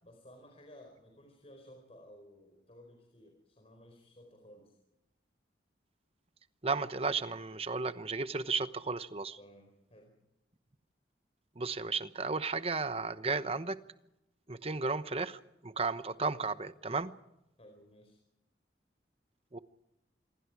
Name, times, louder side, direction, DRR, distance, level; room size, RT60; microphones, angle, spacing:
voice 1, 0.0-4.8 9.4-10.1 17.6-18.2, equal, 35° left, 2 dB, 4.6 m, -56 dB
voice 2, 6.6-9.4 11.6-13.8 14.5-17.1 19.5-19.6, right 4 dB, 35° right, 12 dB, 1.0 m, -34 dB
27.0 x 23.0 x 4.9 m, 0.89 s
head